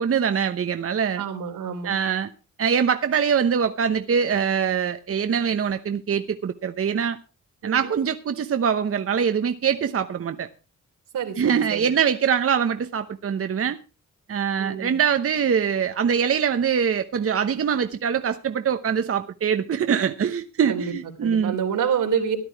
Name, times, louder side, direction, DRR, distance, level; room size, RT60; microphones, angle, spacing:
voice 1, 0.0-1.2 1.8-2.3 2.6-7.2 7.6-10.5 11.4-13.8 14.3-21.5, right 7 dB, 45° right, 0.9 m, -23 dB
voice 2, 1.2-2.0 7.6-7.9 11.1-11.9 14.6-15.0 20.7-20.9 21.2-22.4, right 7 dB, 90° right, 3.3 m, -27 dB
14.0 x 11.0 x 4.7 m
cardioid pair, 95°, 31 cm